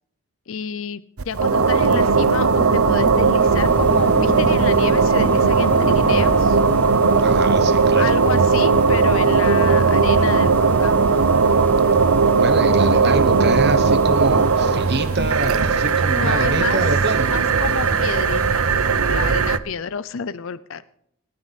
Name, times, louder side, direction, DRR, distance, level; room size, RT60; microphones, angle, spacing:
voice 1, 0.5-6.6 7.9-11.0 16.2-16.8 17.3-20.8, left 6 dB, 65° left, 14 dB, 0.5 m, -30 dB
sound 1, 1.2-19.6, right 4 dB, 80° right, 0.8 m, -17 dB
sound 2, 3.4-18.6, left 1 dB, 10° left, 0.7 m, -35 dB
voice 2, 7.2-8.0 12.4-17.3, right 2 dB, 50° right, 10 dB, 1.2 m, -25 dB
sound 3, 8.5-19.5, left 1 dB, 40° left, 1.1 m, -39 dB
27.0 x 9.6 x 4.2 m, 0.72 s
head